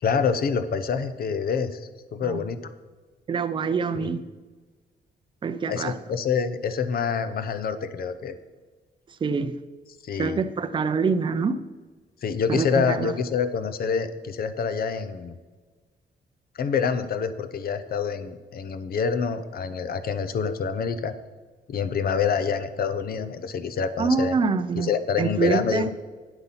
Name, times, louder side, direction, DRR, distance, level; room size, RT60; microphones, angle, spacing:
voice 1, 0.0-2.6 3.9-4.1 5.7-8.3 10.0-10.4 12.2-15.3 16.5-21.1 21.7-24.3 24.8-25.9, left 6 dB, 55° left, 0.7 m, -26 dB
voice 2, 3.3-4.3 5.4-6.0 9.2-9.6 10.2-11.6 12.5-13.2 24.0-24.9 25.2-25.9, right 5 dB, 25° right, 0.5 m, -25 dB
9.1 x 7.9 x 5.7 m
wide cardioid pair, 165°, 19 cm